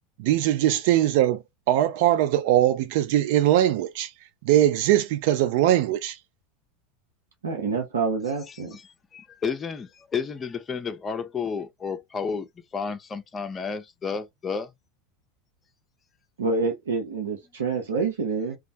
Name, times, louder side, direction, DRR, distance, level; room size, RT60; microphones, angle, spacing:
voice 1, 0.2-4.1 4.5-6.2, right 12 dB, 65° right, 0.3 m, -21 dB
voice 2, 7.4-8.8 16.4-18.6, right 4 dB, 90° right, 0.7 m, -27 dB
voice 3, 8.5-14.7, left 5 dB, 25° left, 0.5 m, -32 dB
2.2 x 2.1 x 2.6 m
hypercardioid pair, 95°, 0 cm